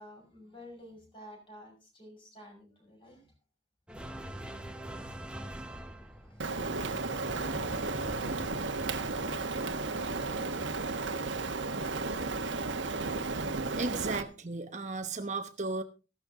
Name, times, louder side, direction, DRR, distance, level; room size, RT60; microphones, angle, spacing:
voice 1, 0.0-3.3 5.7-6.7, left 1 dB, 30° left, 6.2 m, -54 dB
sound 1, 3.9-12.5, right 1 dB, 5° right, 1.1 m, -46 dB
Rain, 6.4-14.2, right 3 dB, 90° right, 1.4 m, -33 dB
voice 2, 13.8-15.8, right 3 dB, 40° right, 1.0 m, -35 dB
15.0 x 12.0 x 3.8 m
head